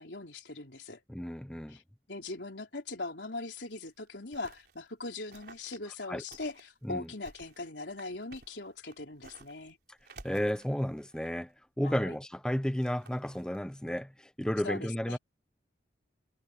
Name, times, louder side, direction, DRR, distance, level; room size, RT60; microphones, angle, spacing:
voice 1, 0.0-1.0 1.7-1.8 2.1-9.8 11.8-12.2 14.6-15.2, left 2 dB, 85° left, 3.9 m, -40 dB
voice 2, 1.1-1.8 6.1-6.2 6.8-7.1 9.9-10.0 10.2-15.2, equal, 5° left, 0.5 m, -33 dB
sound 1, 3.6-4.8 5.3-6.7 7.0-9.7 10.0-11.5 12.6-13.6, right 3 dB, 60° right, 4.5 m, -55 dB
head